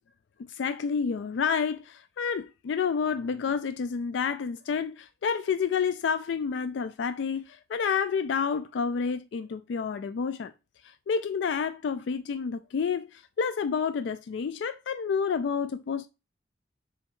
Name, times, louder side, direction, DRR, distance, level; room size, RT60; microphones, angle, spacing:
voice 1, 0.5-10.5 10.8-16.1, left 6 dB, 70° left, 0.3 m, -29 dB
6.9 x 3.5 x 4.5 m
head